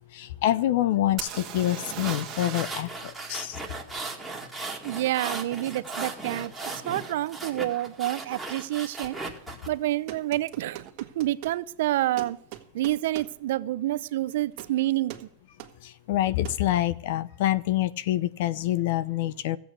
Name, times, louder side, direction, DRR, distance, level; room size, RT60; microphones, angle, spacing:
voice 1, 0.1-3.6 15.8-19.6, left 14 dB, 65° left, 18 dB, 0.7 m, -26 dB
sound 1, 1.2-2.9 3.2-3.3 6.7-6.8 7.4-7.6 7.8-8.4 10.5-10.6 10.8-10.9, right 10 dB, 30° right, 1.5 m, -38 dB
sound 2, 1.8-9.7, right 3 dB, ahead, 2.1 m, -37 dB
voice 2, 4.8-6.5 6.8-9.2 9.7-12.4 12.7-15.2, right 15 dB, 70° right, 17 dB, 0.6 m, -28 dB
sound 3, 9.0-9.5 10.1-11.6 12.2-13.4 14.5-14.8 15.1-15.3 15.6-15.8 16.4-16.7, right 13 dB, 50° right, 1.7 m, -42 dB
14.5 x 8.1 x 8.0 m, 0.70 s
supercardioid pair, 140°, 0 cm